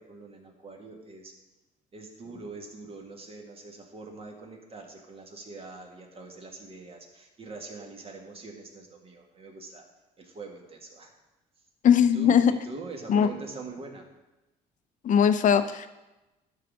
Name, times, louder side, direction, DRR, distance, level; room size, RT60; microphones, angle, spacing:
voice 1, 0.0-1.3 1.9-9.8 10.2-11.1 12.0-14.1, right 3 dB, 35° right, 2 dB, 1.9 m, -43 dB
voice 2, 11.8-12.5 13.1-13.3 15.0-15.9, left 8 dB, 50° left, 11 dB, 0.7 m, -20 dB
12.0 x 4.1 x 6.3 m, 1.0 s
cardioid pair, 110°, 17 cm